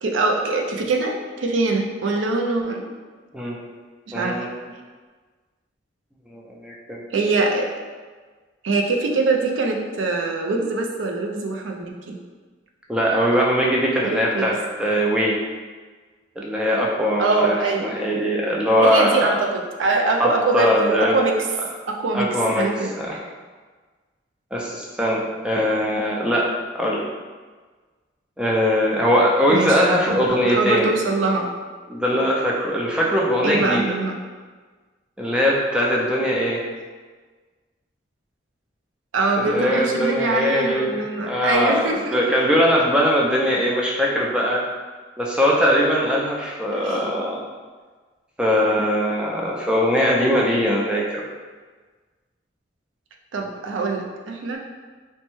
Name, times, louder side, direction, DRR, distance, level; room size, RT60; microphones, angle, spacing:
voice 1, 0.0-2.8 4.1-4.5 7.1-7.7 8.6-12.2 14.0-14.5 17.2-18.3 18.6-21.4 21.9-22.9 29.5-31.5 33.4-34.2 39.1-42.2 46.7-47.1 53.3-54.6, right 3 dB, 80° right, 1 dB, 0.4 m, -23 dB
voice 2, 3.3-3.7 4.1-4.5 6.3-7.1 12.9-15.4 16.4-19.3 20.2-21.2 22.1-22.7 23.0-23.2 24.5-26.5 26.7-27.0 28.4-30.9 31.9-34.0 35.2-36.6 39.4-44.6 45.2-47.4 48.4-51.2, equal, 5° right, -3 dB, 0.3 m, -21 dB
3.2 x 2.1 x 3.0 m, 1.4 s
head